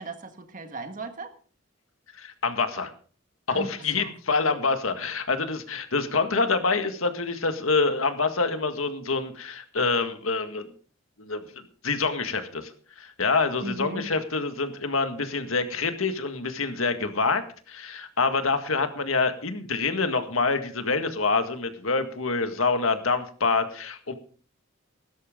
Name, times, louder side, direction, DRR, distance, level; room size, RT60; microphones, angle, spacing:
voice 1, 0.0-1.3 3.5-4.1 13.6-14.1, right 2 dB, 40° right, 7 dB, 1.6 m, -36 dB
voice 2, 2.1-2.9 3.5-10.6 11.2-11.4 11.8-12.7 13.0-24.1, left 4 dB, 85° left, 8 dB, 1.8 m, -26 dB
17.0 x 12.5 x 3.7 m, 0.42 s
head